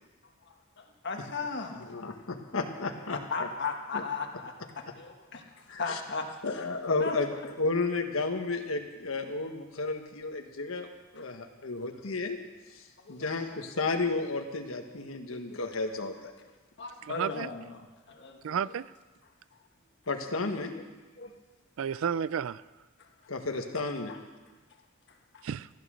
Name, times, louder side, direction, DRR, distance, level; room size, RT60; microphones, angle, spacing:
voice 1, 0.4-1.9 3.1-6.3 6.5-6.6 7.0-7.5 11.2-11.3 13.0-13.6 15.5-15.6 16.8-18.6 21.2-21.3 23.0-23.1 24.1-24.2 25.3-25.4, left 4 dB, 55° left, 3 dB, 1.4 m, -37 dB
voice 2, 1.9-3.5 3.9-4.0 5.7-6.0 6.4-7.3 7.6-10.9 11.1-12.4 12.7-16.3 20.1-20.7 23.3-24.1, left 3 dB, 85° left, 4 dB, 1.5 m, -32 dB
voice 3, 17.0-17.5 18.4-18.9 21.8-22.6 25.4-25.7, right 7 dB, 75° right, 18 dB, 0.4 m, -32 dB
15.0 x 12.0 x 6.4 m, 1.3 s
head